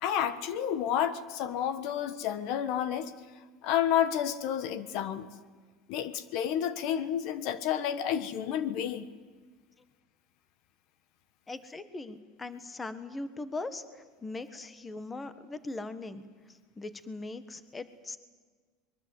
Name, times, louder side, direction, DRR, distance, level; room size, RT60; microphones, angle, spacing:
voice 1, 0.0-3.1 3.6-5.3 5.9-9.1, left 9 dB, 60° left, 13 dB, 1.4 m, -30 dB
voice 2, 11.5-16.3 16.8-18.2, left 2 dB, 15° left, 12 dB, 1.4 m, -40 dB
23.5 x 22.0 x 8.2 m, 1.5 s
supercardioid pair, 130°, 0 cm